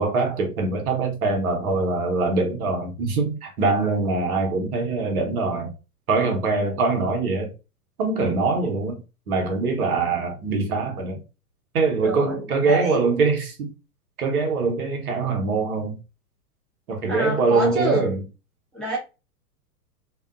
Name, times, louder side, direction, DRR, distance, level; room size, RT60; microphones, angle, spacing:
voice 1, 0.0-5.7 6.1-7.5 8.0-9.0 9.3-11.2 11.7-13.7 14.2-15.9 16.9-18.2, right 3 dB, 65° right, 1.1 m, -23 dB
voice 2, 12.0-13.1 17.1-18.1 18.7-19.0, right 2 dB, ahead, 0.4 m, -27 dB
2.6 x 2.2 x 2.4 m
hypercardioid pair, 100°, 47 cm